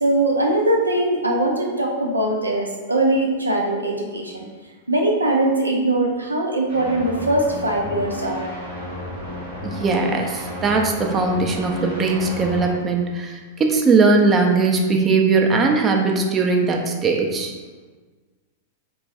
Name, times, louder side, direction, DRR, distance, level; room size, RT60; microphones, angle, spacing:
voice 1, 0.0-4.5 4.9-8.5, right 1 dB, 90° right, 0 dB, 0.6 m, -21 dB
sound 1, 6.7-12.7, equal, 60° right, 1.2 m, -32 dB
voice 2, 9.6-17.5, right 3 dB, 25° right, 2 dB, 0.5 m, -19 dB
4.6 x 3.0 x 2.6 m, 1.4 s
figure-of-eight pair, 95°, 0 cm